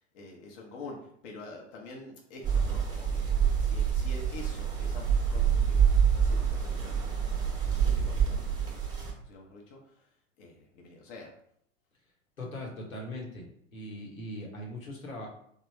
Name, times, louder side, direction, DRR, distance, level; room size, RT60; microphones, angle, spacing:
voice 1, 0.1-8.9 9.2-10.1 10.4-11.3, left 2 dB, 40° left, 0 dB, 0.8 m, -47 dB
sound 1, 2.4-9.1, right 7 dB, 10° right, 0.8 m, -27 dB
voice 2, 12.4-15.3, left 1 dB, 80° left, -2 dB, 1.0 m, -40 dB
3.3 x 2.2 x 3.2 m, 0.67 s
figure-of-eight pair, 95°, 40 cm